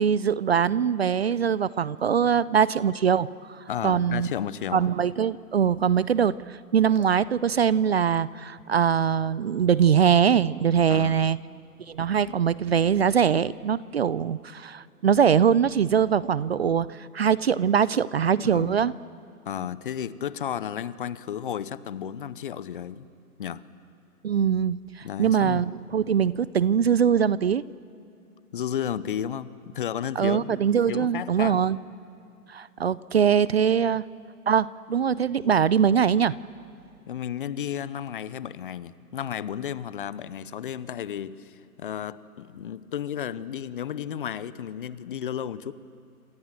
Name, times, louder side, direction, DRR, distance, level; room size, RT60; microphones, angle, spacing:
voice 1, 0.0-4.3 4.7-11.4 11.9-18.9 24.2-27.6 30.2-31.8 32.5-34.0 34.5-36.4, right 7 dB, 45° right, 19 dB, 0.6 m, -22 dB
voice 2, 3.7-4.9 10.9-11.2 18.4-18.9 19.4-23.1 23.4-23.6 25.0-25.6 28.5-31.6 37.1-45.7, left 9 dB, 35° left, 17 dB, 0.9 m, -33 dB
28.5 x 26.5 x 7.6 m, 2.6 s
hypercardioid pair, 145°, 46 cm